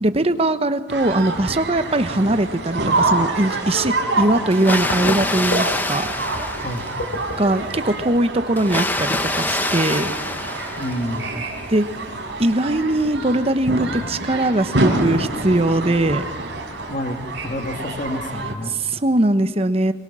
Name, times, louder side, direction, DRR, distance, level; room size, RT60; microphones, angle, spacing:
voice 1, 0.0-6.1 7.4-10.1 11.7-11.8 12.4-16.3 18.8-19.9, right 1 dB, 30° right, 10 dB, 0.9 m, -20 dB
sound 1, 0.9-18.5, right 2 dB, 70° right, 3.9 m, -27 dB
sound 2, 2.8-16.1, left 1 dB, 70° left, 3.0 m, -38 dB
Water, 4.5-7.3 8.6-11.4, left 2 dB, 10° left, 0.9 m, -26 dB
voice 2, 6.6-6.9 10.8-11.4 16.9-18.7, left 1 dB, 40° left, 4 dB, 2.3 m, -29 dB
23.5 x 22.0 x 6.2 m, 1.4 s
head